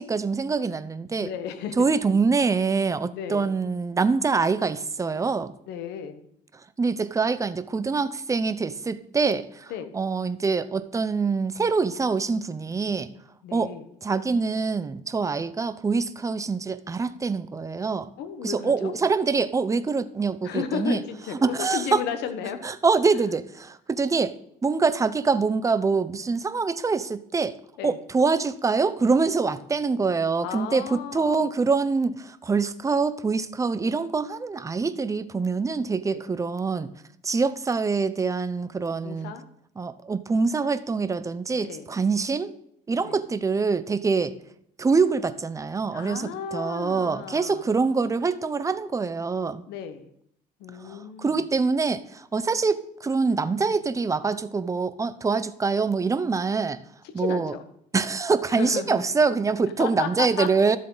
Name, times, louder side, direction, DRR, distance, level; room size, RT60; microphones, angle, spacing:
voice 1, 0.0-1.3 1.8-5.5 6.8-13.1 13.5-13.7 14.0-18.1 18.4-21.0 21.4-22.0 22.6-24.4 24.6-27.6 27.8-36.9 37.2-39.3 39.8-42.5 42.9-44.4 44.8-49.6 50.8-56.8 57.1-57.5 57.9-60.8, right 4 dB, 20° right, 13 dB, 0.6 m, -25 dB
voice 2, 1.2-1.9 3.1-3.5 5.7-6.2 9.7-9.9 13.4-13.9 18.2-19.0 20.4-22.6 27.8-28.0 30.4-31.5 36.1-36.2 39.0-39.5 41.6-41.9 43.0-43.2 45.9-47.7 49.7-50.1 50.6-51.4 57.2-57.7 58.5-59.0 59.8-60.5, left 8 dB, 85° left, 9 dB, 1.2 m, -34 dB
12.5 x 7.4 x 3.9 m, 0.69 s
cardioid pair, 110°, 17 cm